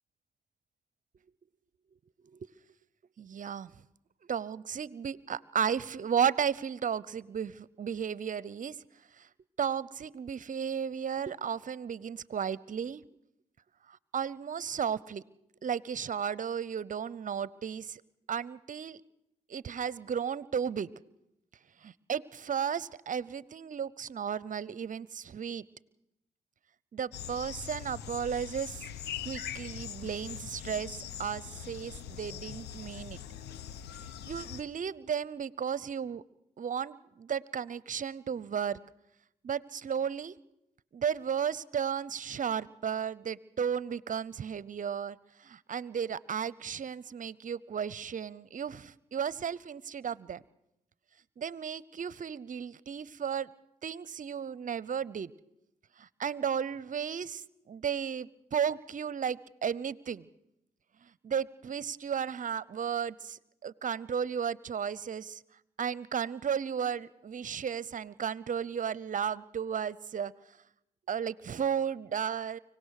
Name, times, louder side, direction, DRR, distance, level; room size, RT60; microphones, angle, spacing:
voice 1, 3.2-3.7 4.3-8.8 9.6-13.0 14.1-15.2 15.6-18.0 18.3-19.0 19.5-20.9 21.8-25.6 26.9-28.8 29.2-33.2 34.2-36.2 36.6-38.8 39.4-40.4 40.9-45.2 45.4-50.4 51.4-53.5 53.8-55.3 56.0-60.3 61.2-65.4 65.8-70.3 71.1-72.6, right 7 dB, 50° right, 21 dB, 0.7 m, -34 dB
sound 1, 27.1-34.6, left 9 dB, 80° left, 1.1 m, -42 dB
24.5 x 17.5 x 6.5 m, 0.85 s
hypercardioid pair, 40°, 17 cm